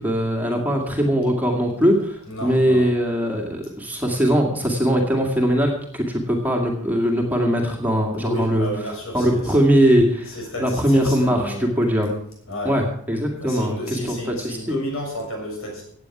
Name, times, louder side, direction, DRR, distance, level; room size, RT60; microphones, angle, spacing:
voice 1, 0.0-12.2 12.6-14.7, equal, 10° right, 1 dB, 2.0 m, -21 dB
voice 2, 2.3-2.9 8.2-9.7 10.3-11.7 12.5-12.7 13.4-15.8, left 1 dB, 70° left, -1 dB, 7.2 m, -31 dB
16.5 x 9.0 x 6.0 m, 0.63 s
head